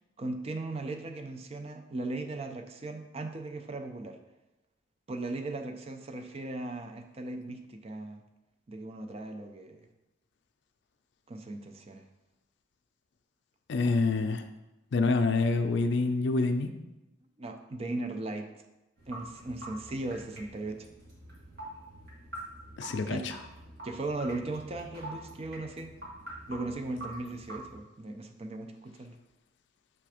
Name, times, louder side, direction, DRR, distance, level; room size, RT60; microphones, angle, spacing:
voice 1, 0.2-4.2 5.1-8.2 8.7-9.9 11.3-12.0 17.4-18.5 19.1-20.9 23.1-23.2 23.8-25.9 26.5-29.2, right 2 dB, 30° right, 5 dB, 0.4 m, -37 dB
voice 2, 13.7-14.4 14.9-16.7 22.8-23.3, left 3 dB, 60° left, 7 dB, 0.4 m, -27 dB
sound 1, 19.0-27.7, right 1 dB, 55° right, 1.7 m, -46 dB
6.8 x 3.3 x 4.9 m, 0.98 s
head